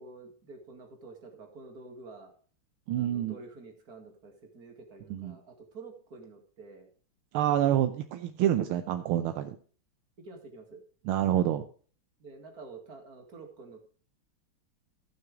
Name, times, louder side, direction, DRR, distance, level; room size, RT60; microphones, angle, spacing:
voice 1, 0.0-2.3 2.9-6.9 10.2-10.8 12.2-13.9, right 3 dB, 45° right, 3 dB, 2.5 m, -48 dB
voice 2, 2.9-3.3 5.1-5.4 7.3-9.6 11.1-11.7, right 11 dB, 80° right, 9 dB, 1.5 m, -27 dB
15.0 x 6.1 x 4.8 m, 0.42 s
omnidirectional pair, 2.4 m